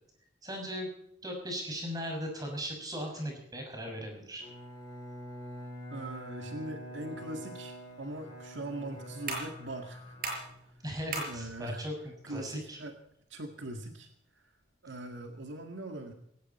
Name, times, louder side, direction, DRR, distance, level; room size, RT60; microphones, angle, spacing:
voice 1, 0.4-0.9 1.2-4.4 10.8-12.8, equal, 20° right, 2 dB, 6.2 m, -38 dB
Bowed string instrument, 4.4-11.0, equal, 20° left, 6.0 m, -46 dB
voice 2, 5.9-10.2 11.3-11.9 12.2-13.0 13.3-14.5 14.8-16.1, right 1 dB, 70° right, 5 dB, 1.9 m, -41 dB
sound 1, 7.7-14.7, right 3 dB, 45° right, 6.6 m, -44 dB
18.5 x 17.0 x 4.3 m, 0.74 s
head